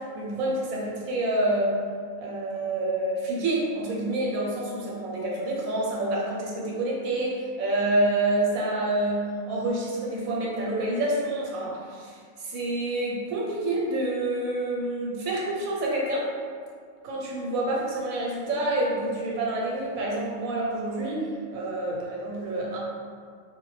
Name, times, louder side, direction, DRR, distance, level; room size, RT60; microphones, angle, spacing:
voice 1, 0.1-1.8 2.2-16.3 17.0-22.8, right 1 dB, 90° right, -4 dB, 1.0 m, -28 dB
2.3 x 2.1 x 3.0 m, 2.1 s
omnidirectional pair, 1.4 m